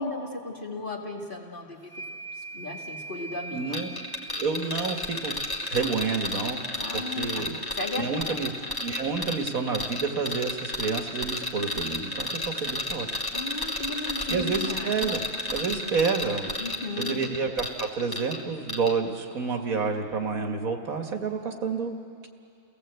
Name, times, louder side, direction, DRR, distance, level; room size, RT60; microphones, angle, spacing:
voice 1, 0.0-1.9 2.4-3.7 6.7-7.5 7.8-8.4 13.3-14.9 16.6-17.2, left 2 dB, 35° left, -1 dB, 2.4 m, -35 dB
sound 1, 1.8-6.1, right 2 dB, 20° right, 0.5 m, -42 dB
voice 2, 3.5-3.9 4.4-5.4 5.7-6.6 6.9-7.6 8.0-8.5 8.8-13.1 14.3-15.2 15.5-16.5 17.0-22.3, right 5 dB, 70° right, 4 dB, 1.9 m, -29 dB
sound 2, 3.7-18.4 18.7-18.9, left 1 dB, 15° left, 1.7 m, -32 dB
29.5 x 17.0 x 8.0 m, 2.5 s
omnidirectional pair, 1.5 m